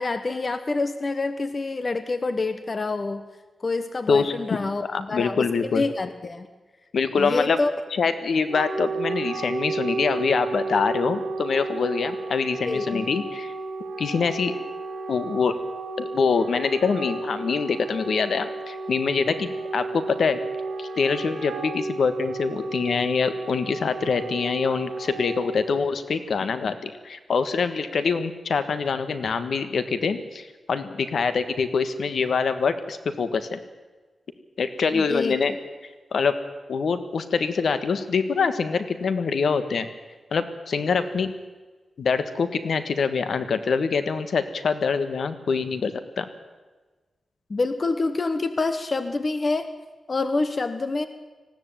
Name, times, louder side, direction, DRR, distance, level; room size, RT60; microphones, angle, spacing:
voice 1, 0.0-3.2 3.6-6.5 7.2-7.7 12.7-13.1 34.9-35.4 47.5-49.7 50.1-51.1, left 3 dB, 35° left, 10 dB, 1.1 m, -27 dB
voice 2, 4.8-5.8 6.9-7.6 7.9-13.5 14.0-14.5 15.1-15.5 16.0-20.4 20.8-33.6 34.6-35.5 36.1-36.3 36.7-39.9 40.3-41.3 42.0-46.3, left 5 dB, 70° left, 11 dB, 1.5 m, -25 dB
Wind instrument woodwind instrument, 8.3-25.7, right 3 dB, 85° right, 2.2 m, -33 dB
19.5 x 15.5 x 9.0 m, 1.3 s
wide cardioid pair, 130°, 0 cm